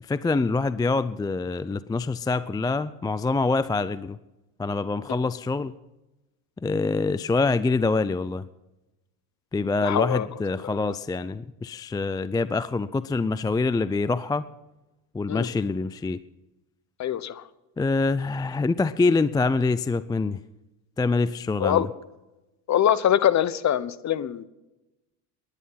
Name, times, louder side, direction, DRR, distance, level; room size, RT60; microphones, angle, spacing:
voice 1, 0.1-4.2 4.6-5.7 6.6-8.4 9.5-14.5 15.1-16.2 17.8-20.4 21.0-21.9, left 3 dB, 10° left, 15 dB, 0.4 m, -25 dB
voice 2, 9.8-10.3 15.3-15.5 17.0-17.4 21.6-21.9 22.7-24.4, left 10 dB, 40° left, 16 dB, 1.1 m, -23 dB
20.5 x 10.5 x 5.8 m, 0.99 s
supercardioid pair, 95°, 44 cm